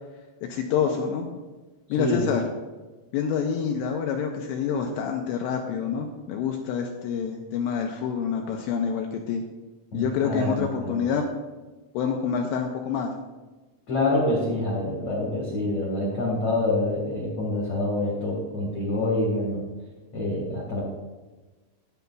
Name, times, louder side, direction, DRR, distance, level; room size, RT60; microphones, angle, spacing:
voice 1, 0.5-1.3 1.9-2.5 3.1-9.4 9.9-11.3 11.9-13.1, left 7 dB, 85° left, 2 dB, 2.6 m, -27 dB
voice 2, 9.9-10.9 13.9-19.6 20.1-20.8, left 2 dB, 55° left, -4 dB, 1.8 m, -26 dB
12.0 x 9.2 x 2.3 m, 1.2 s
omnidirectional pair, 5.4 m